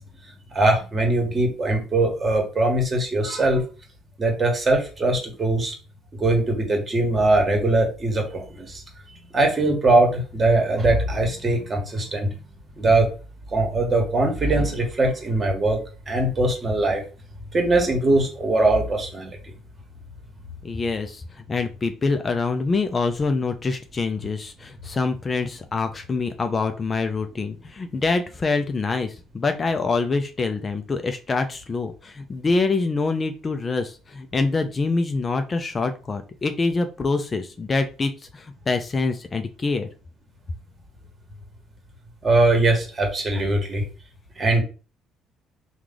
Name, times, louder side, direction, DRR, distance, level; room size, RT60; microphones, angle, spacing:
voice 1, 0.5-3.6 4.2-5.7 6.1-8.8 9.3-12.4 12.8-13.1 13.5-17.0 17.5-19.5 42.2-43.8 44.4-44.6, right 2 dB, 35° right, 2 dB, 1.4 m, -21 dB
voice 2, 20.6-39.9, left 3 dB, 30° left, 7 dB, 0.5 m, -25 dB
3.1 x 2.4 x 3.8 m, 0.34 s
supercardioid pair, 70°, 0 cm